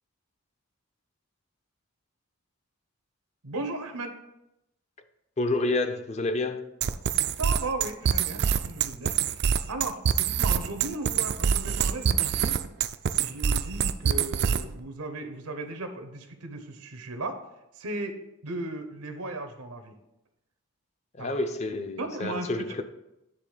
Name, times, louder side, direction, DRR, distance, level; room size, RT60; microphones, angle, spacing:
voice 1, 3.4-4.2 7.4-12.6 13.1-17.4 17.8-18.1 18.4-19.9 21.2-21.3 22.0-22.5, right 2 dB, 90° right, 7 dB, 0.9 m, -36 dB
voice 2, 5.4-6.7 21.1-22.8, left 2 dB, 30° left, 8 dB, 0.5 m, -29 dB
sound 1, 6.8-14.8, right 7 dB, 45° right, 0.3 m, -25 dB
10.0 x 3.6 x 4.9 m, 0.89 s
head